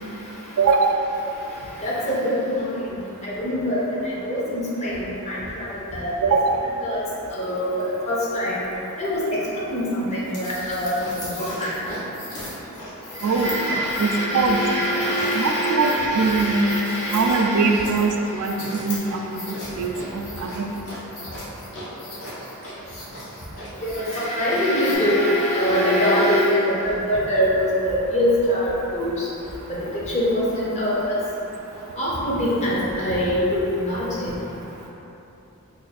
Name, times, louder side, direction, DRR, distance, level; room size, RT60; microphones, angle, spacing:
voice 1, 0.6-1.0 6.2-6.6 13.2-13.5 14.0-14.6 15.3-16.7 17.1-20.7, right 4 dB, 85° right, 4 dB, 0.3 m, -22 dB
voice 2, 1.8-3.8 4.2-6.4 6.8-7.0 7.3-7.7 8.1-8.5 9.0-9.4 9.7-11.7 13.2-17.8 23.8-29.1 29.7-31.2 32.0-34.3, equal, 30° left, -6 dB, 0.6 m, -24 dB
sound 1, 10.2-25.0, left 1 dB, 65° left, 0.8 m, -37 dB
2.5 x 2.3 x 4.1 m, 2.9 s
head